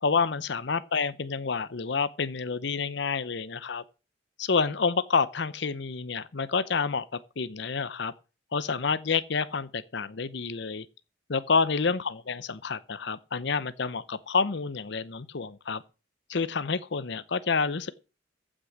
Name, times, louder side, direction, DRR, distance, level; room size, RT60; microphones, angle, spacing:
voice 1, 0.0-3.8 4.4-8.1 8.5-10.9 11.3-15.8 16.3-17.9, left 5 dB, 65° left, 0.7 m, -28 dB
15.0 x 6.3 x 6.4 m
head